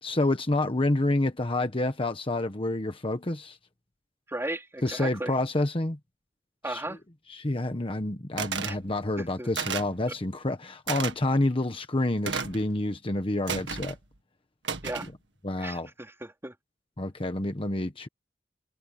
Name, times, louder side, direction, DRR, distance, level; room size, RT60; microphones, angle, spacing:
voice 1, 0.0-3.6 4.8-6.0 6.7-6.8 7.3-14.0 15.4-15.9 17.0-18.1, left 2 dB, 30° left, 1.2 m, -28 dB
voice 2, 4.3-5.4 6.6-7.0 8.6-8.8 9.2-9.5 14.8-15.1 15.6-16.5, right 1 dB, 15° right, 4.1 m, -36 dB
sound 1, 8.4-8.8 9.5-10.0 10.9-11.1 12.2-12.6 13.5-14.0 14.6-15.1, right 6 dB, 85° right, 1.9 m, -32 dB
head